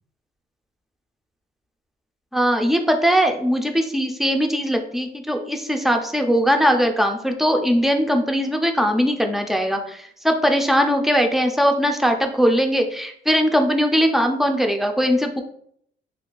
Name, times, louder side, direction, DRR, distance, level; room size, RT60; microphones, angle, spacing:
voice 1, 2.3-15.4, equal, ahead, 4 dB, 0.4 m, -20 dB
2.5 x 2.3 x 3.7 m, 0.66 s
cardioid pair, 90°, 20 cm